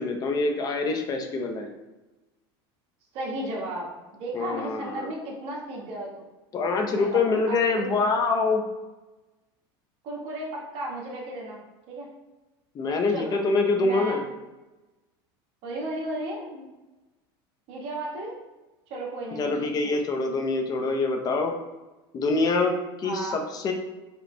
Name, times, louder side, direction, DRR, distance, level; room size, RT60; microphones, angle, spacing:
voice 1, 0.0-1.7 4.3-5.1 6.5-8.6 12.7-14.2 19.4-21.5 22.1-23.7, left 3 dB, 30° left, 4 dB, 0.7 m, -25 dB
voice 2, 3.1-6.2 7.0-7.9 10.0-11.6 11.9-12.1 13.1-13.5 13.7-14.2 15.6-16.7 17.7-18.3 18.9-20.0 23.0-23.4, right 1 dB, 50° right, -3 dB, 1.4 m, -34 dB
5.0 x 3.1 x 3.3 m, 1.1 s
supercardioid pair, 125°, 13 cm